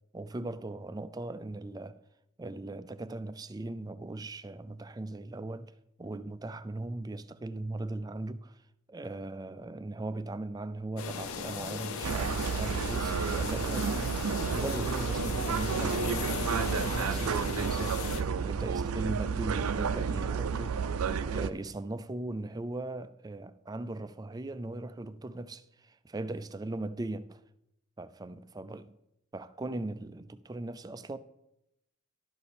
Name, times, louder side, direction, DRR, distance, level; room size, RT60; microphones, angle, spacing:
voice 1, 0.1-2.0 2.4-8.6 8.9-20.8 21.3-27.4 28.0-28.9 29.3-31.2, right 2 dB, 20° right, 0.3 m, -39 dB
sound 1, 11.0-18.2, left 5 dB, 80° left, 0.7 m, -37 dB
sound 2, 12.0-21.5, right 6 dB, 90° right, 0.5 m, -31 dB
11.5 x 6.8 x 4.2 m
head